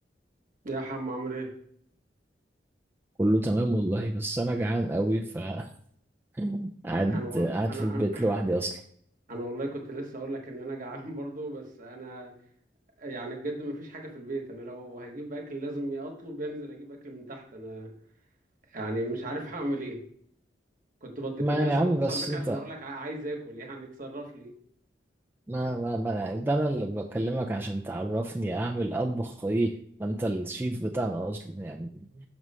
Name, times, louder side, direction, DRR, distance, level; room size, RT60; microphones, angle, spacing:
voice 1, 0.6-1.5 7.1-8.3 9.3-12.3 13.0-17.9 18.7-20.0 21.0-24.5 32.1-32.2, right 1 dB, 50° right, 2 dB, 1.2 m, -36 dB
voice 2, 3.2-5.7 6.4-8.8 21.4-22.6 25.5-29.7 30.0-31.9, right 1 dB, 10° right, 0 dB, 0.4 m, -28 dB
6.1 x 3.1 x 5.4 m, 0.64 s
head